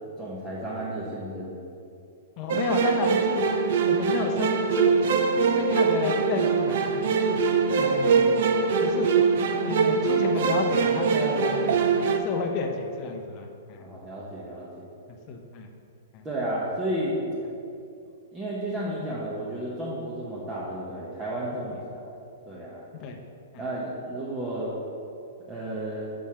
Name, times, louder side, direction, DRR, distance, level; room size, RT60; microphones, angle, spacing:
voice 1, 0.2-1.6 13.8-14.8 16.2-17.2 18.3-22.1 22.5-22.8 23.6-24.7 25.5-26.1, right 1 dB, 10° right, -8 dB, 0.7 m, -32 dB
voice 2, 2.4-3.4 3.9-5.1 5.3-7.4 7.8-8.3 8.8-9.1 9.6-11.7 12.2-13.9 15.3-15.7 16.1-16.2 23.0-23.2 23.5-23.6, left 4 dB, 30° left, 3 dB, 0.6 m, -31 dB
sound 1, 2.5-12.2, right 5 dB, 55° right, 0.5 m, -23 dB
6.2 x 5.5 x 4.3 m, 2.6 s
hypercardioid pair, 170°, 0 cm